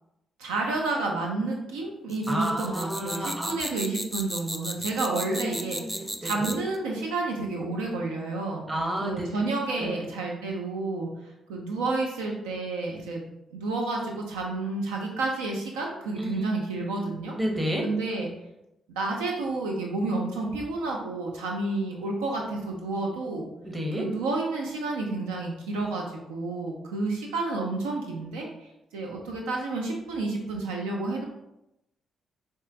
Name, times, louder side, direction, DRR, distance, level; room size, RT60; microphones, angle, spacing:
voice 1, 0.4-8.6 9.0-11.1 11.5-13.2 13.5-17.3 17.8-18.3 18.9-23.5 24.0-31.2, right 3 dB, 85° right, 0 dB, 0.4 m, -30 dB
sound 1, 2.1-6.7, equal, 5° right, 0.5 m, -34 dB
voice 2, 2.3-3.6 5.1-6.6 8.7-9.3 9.8-10.0 16.2-16.5 17.4-17.9 23.6-24.1, equal, 25° right, 1 dB, 0.9 m, -31 dB
4.7 x 2.3 x 2.7 m, 0.88 s
hypercardioid pair, 45°, 0 cm